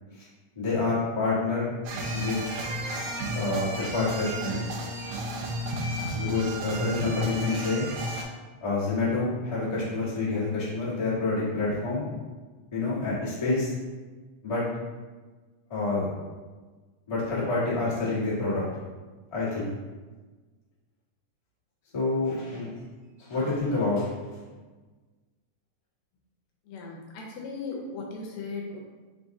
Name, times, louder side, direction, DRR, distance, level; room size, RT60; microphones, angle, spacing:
voice 1, 0.5-1.8 2.1-2.4 3.3-4.6 6.1-7.9 8.6-12.0 12.7-13.7 14.4-14.6 15.7-16.1 17.1-18.6 19.3-19.7 21.9-22.7 23.2-24.1, left 3 dB, 45° left, -9 dB, 0.4 m, -28 dB
sound 1, 1.8-8.2, right 1 dB, 85° right, 2.0 m, -32 dB
voice 2, 26.7-28.8, left 3 dB, 80° left, -1 dB, 1.8 m, -37 dB
5.1 x 3.5 x 2.6 m, 1.3 s
omnidirectional pair, 3.4 m